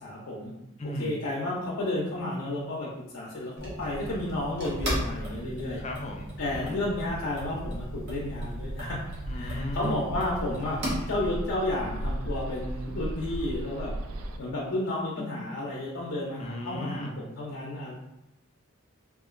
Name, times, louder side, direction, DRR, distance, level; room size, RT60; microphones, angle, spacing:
voice 1, 0.0-0.5 1.0-2.9 3.1-5.8 6.4-9.0 9.3-10.8 11.1-13.9 14.4-17.9, left 1 dB, 85° left, -4 dB, 0.5 m, -32 dB
voice 2, 0.8-1.2 5.7-6.8 9.3-10.0 15.2-15.6 16.4-17.2, left 1 dB, 30° left, 1 dB, 0.4 m, -37 dB
sound 1, 3.6-11.4, equal, 50° right, 0.8 m, -36 dB
Bird, 7.1-14.4, right 1 dB, 90° right, 0.3 m, -37 dB
2.9 x 2.5 x 2.4 m, 0.89 s
head